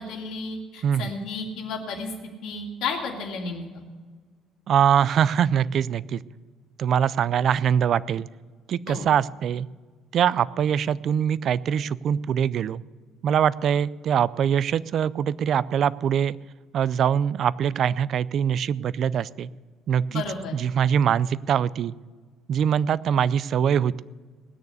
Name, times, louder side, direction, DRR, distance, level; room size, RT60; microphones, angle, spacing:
voice 1, 0.0-2.1 2.4-3.8 8.9-9.1 20.1-20.5, left 4 dB, 70° left, -1 dB, 2.6 m, -32 dB
voice 2, 0.8-1.1 4.7-6.2 6.8-8.3 8.7-9.7 10.1-12.8 13.2-16.4 16.7-19.5 19.9-20.2 20.5-21.9 22.5-24.0, right 8 dB, 45° right, 19 dB, 0.4 m, -23 dB
19.0 x 6.8 x 8.1 m, 1.4 s
cardioid pair, 165°, 0 cm